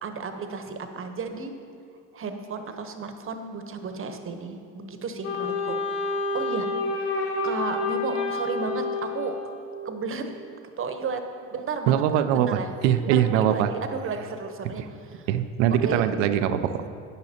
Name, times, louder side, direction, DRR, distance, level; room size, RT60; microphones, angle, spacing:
voice 1, 0.0-1.5 2.1-6.7 6.9-9.4 9.8-10.3 10.8-11.2 11.5-12.7 13.0-15.3 15.7-16.1, right 4 dB, 35° right, 7 dB, 1.0 m, -33 dB
Wind instrument woodwind instrument, 5.2-9.8, left 3 dB, 80° left, 2.2 m, -29 dB
voice 2, 11.9-13.7 15.3-16.8, right 10 dB, 85° right, 10 dB, 0.6 m, -22 dB
10.5 x 9.5 x 2.9 m, 2.4 s
supercardioid pair, 80°, 35 cm